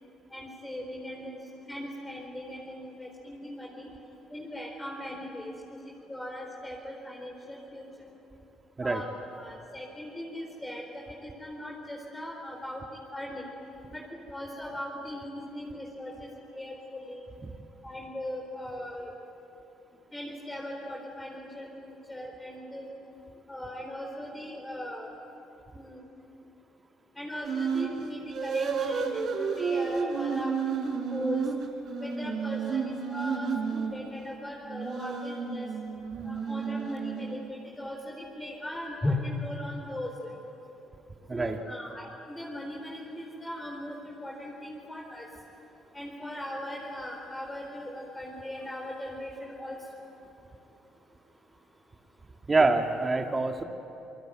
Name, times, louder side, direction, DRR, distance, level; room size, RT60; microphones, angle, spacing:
voice 1, 0.3-1.4 1.7-3.9 4.3-5.8 6.1-7.8 8.8-9.0 9.4-12.8 13.1-13.5 13.9-17.3 17.8-19.1 20.1-22.9 23.5-25.1 25.7-26.0 27.2-30.5 31.1-31.4 32.0-35.7 36.2-40.3 41.3-45.3 45.9-49.8, left 1 dB, 15° left, -1 dB, 4.3 m, -38 dB
sound 1, 27.4-27.9 28.3-34.0 34.7-37.6, right 5 dB, 60° right, 3.8 m, -31 dB
voice 2, 52.5-53.6, right 3 dB, 25° right, 4 dB, 1.9 m, -25 dB
28.5 x 20.0 x 9.4 m, 2.9 s
supercardioid pair, 80°, 0 cm